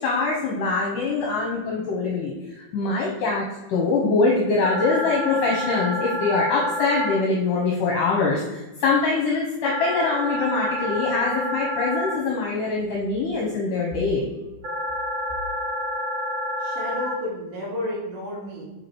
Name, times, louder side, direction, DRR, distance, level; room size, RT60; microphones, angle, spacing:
voice 1, 0.0-2.3 2.7-3.4 3.7-14.3, left 3 dB, 70° left, -2 dB, 2.3 m, -23 dB
sound 1, 4.6-7.1 9.6-12.1 14.6-17.1, equal, 60° right, 1.2 m, -28 dB
voice 2, 16.6-18.6, left 1 dB, 85° right, -3 dB, 4.1 m, -31 dB
7.1 x 4.9 x 4.6 m, 1.1 s
omnidirectional pair, 4.4 m